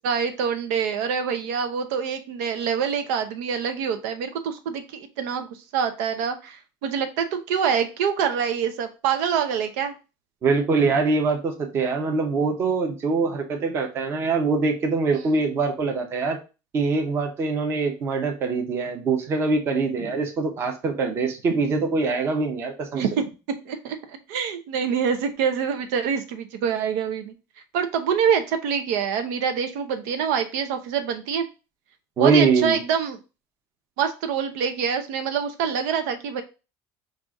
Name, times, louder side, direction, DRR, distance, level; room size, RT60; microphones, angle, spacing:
voice 1, 0.0-9.9 15.2-15.3 22.9-23.1 23.6-27.3 27.7-31.5 32.2-33.2 34.0-36.4, right 7 dB, 75° right, 6 dB, 0.7 m, -25 dB
voice 2, 10.4-16.4 16.7-23.0 32.2-32.8, right 4 dB, 25° right, 3 dB, 0.8 m, -23 dB
5.5 x 2.5 x 3.6 m, 0.30 s
cardioid pair, 170°, 9 cm